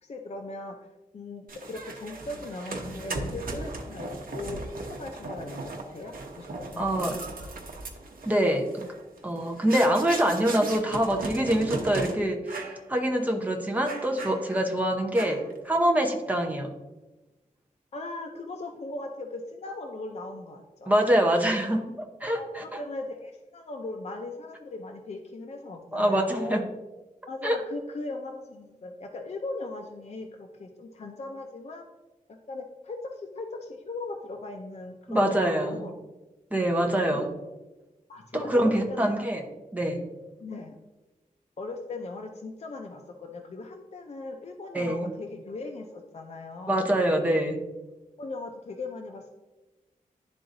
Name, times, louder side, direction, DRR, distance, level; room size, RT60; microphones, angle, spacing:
voice 1, 0.0-0.9 1.1-4.6 4.9-7.4 17.9-21.0 22.3-26.7 27.3-31.9 32.5-35.9 37.1-37.3 38.1-39.2 40.4-40.8 41.6-46.8 48.2-49.3, left 2 dB, 50° left, 3 dB, 0.5 m, -39 dB
sound 1, 1.5-12.1 12.5-12.8 13.2-13.3 13.9-14.7 15.2-15.6, right 2 dB, 85° right, 0.8 m, -37 dB
voice 2, 6.8-7.2 8.3-8.8 9.2-16.7 20.9-21.8 22.2-22.8 25.9-26.6 27.4-27.6 35.1-35.9 36.5-37.3 38.3-39.4 39.7-40.1 44.7-45.1 46.7-47.6, right 1 dB, 10° right, 1 dB, 0.8 m, -25 dB
11.0 x 3.8 x 2.6 m, 1.1 s
wide cardioid pair, 135°, 14 cm